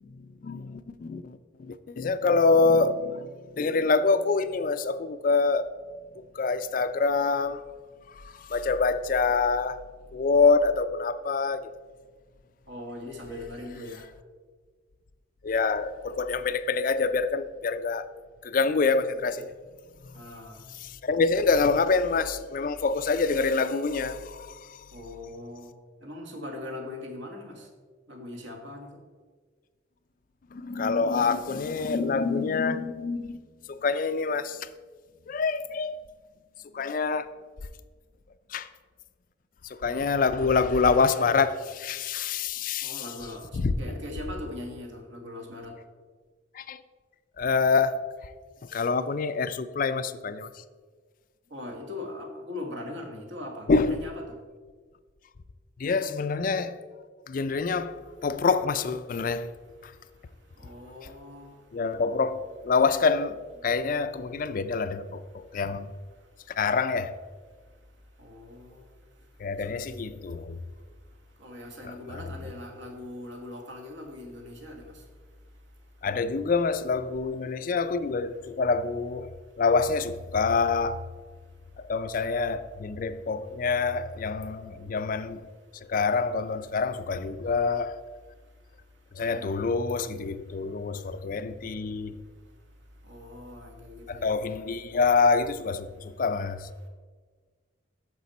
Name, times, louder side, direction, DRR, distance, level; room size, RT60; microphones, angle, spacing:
voice 1, 0.0-5.7 6.2-7.6 8.1-9.8 10.1-11.7 15.4-18.1 18.4-19.5 20.8-24.9 30.5-33.4 33.7-34.7 35.3-36.0 36.7-37.3 38.5-38.7 39.6-43.1 43.5-43.7 46.5-46.8 47.4-48.0 48.2-48.3 48.7-50.6 53.7-54.0 55.8-56.8 57.3-59.5 59.8-59.9 61.0-61.1 61.7-63.4 63.6-65.9 66.6-67.1 69.4-70.6 71.8-72.2 76.0-81.1 81.8-85.5 85.9-88.0 89.1-92.2 94.1-96.7, left 4 dB, 45° left, 0.4 m, -26 dB
voice 2, 12.7-14.0 20.1-20.6 24.9-25.7 26.0-27.5 28.1-28.9 42.8-43.4 43.8-45.7 51.5-54.2 60.6-61.5 68.2-68.8 71.4-74.9 89.3-89.7 93.1-94.3, left 1 dB, 65° right, 1.5 m, -40 dB
9.2 x 6.7 x 4.1 m
head